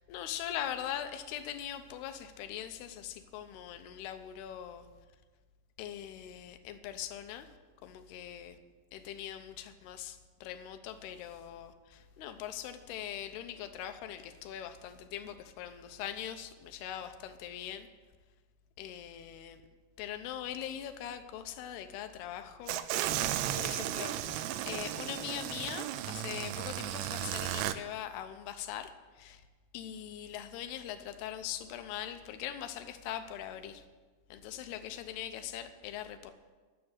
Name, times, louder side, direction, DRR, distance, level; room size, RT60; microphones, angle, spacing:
voice 1, 0.0-4.9 5.8-7.5 7.8-8.6 8.9-17.9 18.8-19.6 20.0-22.8 23.5-29.4 29.7-33.8 34.3-36.3, left 10 dB, 80° left, 9 dB, 2.7 m, -41 dB
sound 1, 22.7-27.8, right 12 dB, 90° right, 2.8 m, -34 dB
12.0 x 7.5 x 8.8 m, 1.4 s
omnidirectional pair, 4.9 m